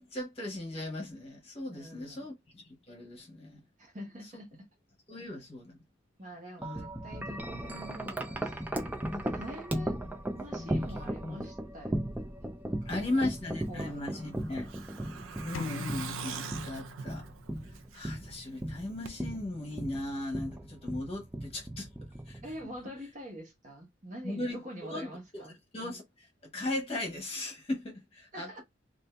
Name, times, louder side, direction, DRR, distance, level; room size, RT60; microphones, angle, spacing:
voice 1, 0.0-3.6 5.1-5.8 6.6-6.8 10.5-11.4 12.8-14.7 15.4-17.2 17.9-21.9 22.3-22.4 24.2-25.5 25.7-26.3 26.5-28.6, left 2 dB, 30° left, 1.0 m, -37 dB
voice 2, 1.7-2.3 3.8-4.7 6.2-9.9 10.4-12.1 12.4-13.2 13.7-14.4 15.2-16.0 22.4-25.5 28.3-28.6, equal, 40° right, 1.2 m, -46 dB
Wind chime, 6.6-22.8, right 1 dB, 10° right, 0.4 m, -37 dB
Truck, 13.6-18.3 18.6-18.7 19.0-19.1, right 7 dB, 80° right, 0.4 m, -43 dB
sound 1, 15.5-17.5, left 7 dB, 80° left, 0.3 m, -42 dB
2.7 x 2.5 x 3.2 m
head